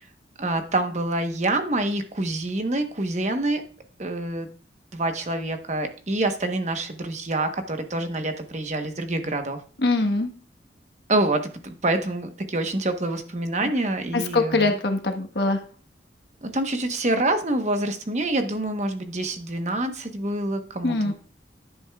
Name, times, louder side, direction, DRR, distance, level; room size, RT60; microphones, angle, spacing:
voice 1, 0.4-3.6 4.0-4.5 4.9-9.6 11.1-14.8 16.4-21.1, right 2 dB, 40° right, 6 dB, 1.1 m, -26 dB
voice 2, 9.8-10.3 14.1-15.6 20.8-21.1, left 2 dB, 65° left, 5 dB, 1.3 m, -23 dB
10.5 x 9.1 x 2.3 m, 0.40 s
head